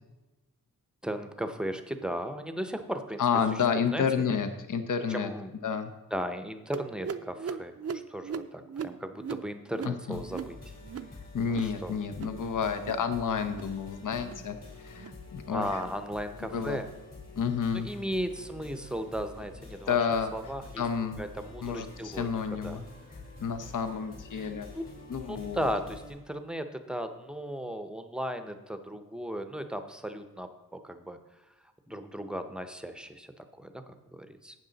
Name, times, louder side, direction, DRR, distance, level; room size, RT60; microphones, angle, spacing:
voice 1, 1.0-3.2 3.5-3.6 3.9-4.0 5.1-5.5 6.1-10.6 11.5-11.9 15.5-16.9 17.7-20.0 20.3-20.8 21.2-22.3 22.6-22.8 24.4-25.0 25.3-31.2 31.9-34.5, equal, ahead, 8 dB, 0.7 m, -36 dB
voice 2, 3.2-5.3 5.6-5.9 9.8-10.2 11.3-15.8 16.5-16.8 17.4-17.9 19.9-20.3 20.8-21.2 21.6-22.9 23.4-24.7 25.1-25.6, left 6 dB, 65° left, 8 dB, 0.8 m, -30 dB
sound 1, 6.7-11.8 12.0-12.4 12.7-13.1 13.4-13.8 14.1-14.5 14.9-15.2 15.7-16.0 16.5-16.7 17.3-17.5 18.2-18.3 19.0-19.1 19.9-20.0, right 6 dB, 45° right, 0.5 m, -40 dB
sound 2, 10.1-26.1, left 2 dB, 45° left, 3.9 m, -47 dB
12.0 x 8.5 x 4.0 m, 1.1 s
wide cardioid pair, 160°, 34 cm